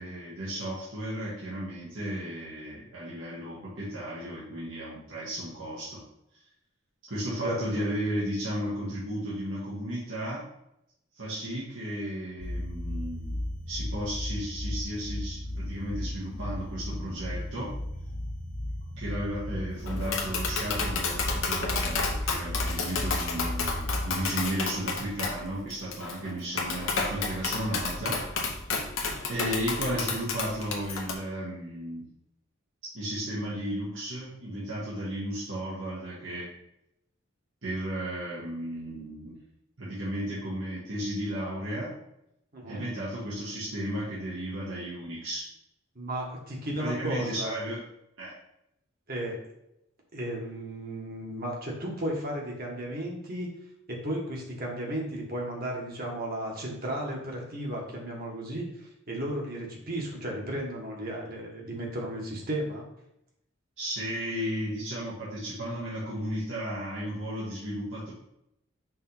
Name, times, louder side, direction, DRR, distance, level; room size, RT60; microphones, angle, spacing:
voice 1, 0.0-6.0 7.1-10.5 11.1-13.4 13.7-17.7 19.0-28.5 29.3-32.1 32.9-36.5 37.6-39.4 39.8-42.0 42.7-45.5 46.8-47.8 48.2-48.3 63.8-68.1, right 1 dB, 70° right, -8 dB, 1.6 m, -34 dB
voice 2, 7.4-7.8 29.3-29.4 42.5-42.8 45.9-47.5 49.1-49.4 50.1-53.5 53.9-62.9, right 1 dB, 50° right, -1 dB, 1.6 m, -34 dB
sound 1, 12.4-24.2, left 1 dB, 35° left, 0.7 m, -35 dB
Tap, 19.9-31.1, left 4 dB, 80° left, 1.0 m, -31 dB
5.5 x 3.3 x 5.5 m, 0.81 s
head